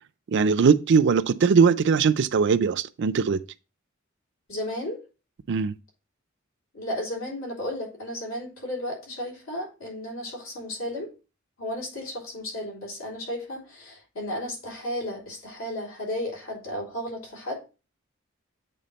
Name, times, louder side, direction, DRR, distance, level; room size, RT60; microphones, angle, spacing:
voice 1, 0.3-3.4 5.5-5.7, right 5 dB, 60° right, 0.4 m, -20 dB
voice 2, 4.5-5.0 6.7-11.1 11.6-17.6, left 1 dB, 80° left, 3.6 m, -34 dB
8.5 x 3.7 x 4.0 m
head